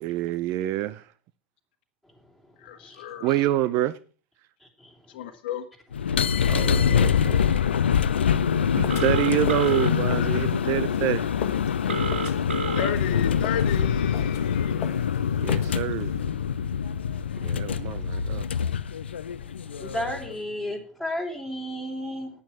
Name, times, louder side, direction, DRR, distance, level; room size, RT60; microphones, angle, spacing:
voice 1, 0.0-1.1 3.2-4.0 6.5-7.4 8.7-11.3 15.4-16.1 17.4-18.5, right 14 dB, 45° right, 0.6 m, -27 dB
voice 2, 2.6-3.4 5.1-5.6 12.7-14.8, left 8 dB, 65° left, 1.3 m, -33 dB
voice 3, 4.6-4.9 17.8-17.9 18.5-18.6 19.8-22.3, equal, ahead, 3.7 m, -33 dB
sound 1, 5.9-20.3, left 7 dB, 80° left, 0.7 m, -25 dB
sound 2, 8.8-16.2, left 9 dB, 45° left, 1.4 m, -40 dB
Telephone, 8.9-9.9 11.9-12.9, right 6 dB, 80° right, 0.9 m, -31 dB
9.7 x 9.0 x 5.9 m
hypercardioid pair, 90°, 6 cm